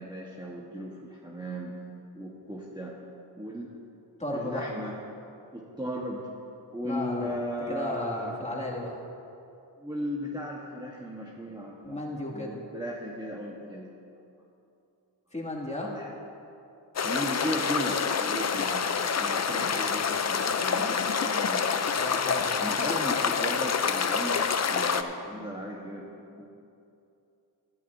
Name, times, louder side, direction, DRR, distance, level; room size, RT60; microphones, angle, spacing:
voice 1, 0.0-1.7 2.1-2.9 3.4-3.7 4.3-4.9 5.5-6.2 6.7-8.4 9.8-12.0 12.3-13.9 15.8-16.1 17.0-18.9 19.2-21.7 22.6-26.5, equal, 10° right, -4 dB, 1.4 m, -36 dB
voice 2, 4.2-4.6 6.8-7.3 7.7-9.0 11.8-12.6 15.3-15.9 22.0-22.6, left 2 dB, 15° left, -3 dB, 2.5 m, -34 dB
sound 1, 17.0-25.0, left 6 dB, 35° left, 0.6 m, -27 dB
13.5 x 12.5 x 2.8 m, 2.7 s
cardioid pair, 45°, 49 cm